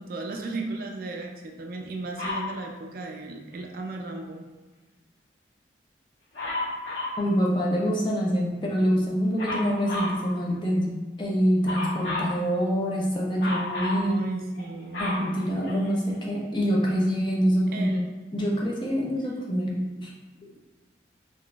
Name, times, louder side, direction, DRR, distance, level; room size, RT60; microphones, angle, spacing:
voice 1, 0.0-4.4 14.0-15.2 17.7-18.0 18.5-18.6 19.8-20.1, right 2 dB, 50° right, 1 dB, 0.3 m, -35 dB
Dog, 2.2-2.5 6.3-7.2 9.4-10.2 11.6-12.3 13.4-14.0 14.6-16.1 16.8-16.9, left 2 dB, 80° left, 1.1 m, -31 dB
voice 2, 7.2-14.1 15.0-17.9 18.3-19.7 20.0-20.1, equal, 25° left, -3 dB, 0.5 m, -25 dB
3.7 x 2.4 x 2.3 m, 1.2 s
head